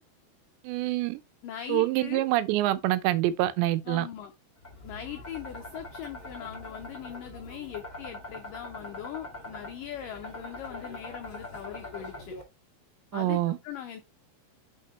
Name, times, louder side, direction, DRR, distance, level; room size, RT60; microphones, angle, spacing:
voice 1, 0.6-1.2 1.7-4.1 13.1-13.6, right 15 dB, 85° right, 2.9 m, -26 dB
voice 2, 1.4-2.3 3.9-4.3 4.8-12.4 13.1-14.0, left 10 dB, 85° left, 1.9 m, -40 dB
sound 1, 4.6-12.4, left 2 dB, 50° left, 0.5 m, -43 dB
6.6 x 5.8 x 3.1 m
omnidirectional pair, 5.0 m